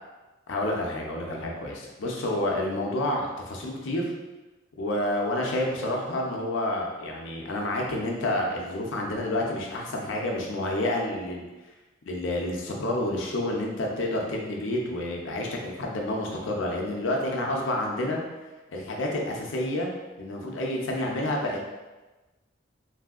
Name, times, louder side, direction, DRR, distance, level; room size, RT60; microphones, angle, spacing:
voice 1, 0.5-4.1 4.8-11.4 12.1-18.2 18.7-19.9 20.2-21.6, left 1 dB, 75° left, -1 dB, 0.5 m, -29 dB
3.1 x 2.7 x 2.4 m, 1.2 s
head